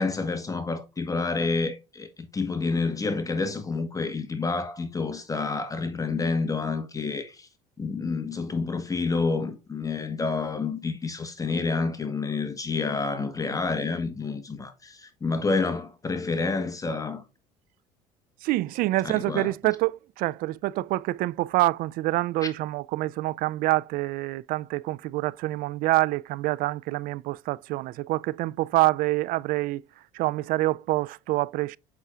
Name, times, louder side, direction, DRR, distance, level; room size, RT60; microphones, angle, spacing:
voice 1, 0.0-7.5 7.8-17.2 19.0-19.5, left 4 dB, 20° left, 1.3 m, -29 dB
voice 2, 18.4-31.8, right 18 dB, 65° right, 0.4 m, -26 dB
8.1 x 6.0 x 2.4 m
supercardioid pair, 85°, 16 cm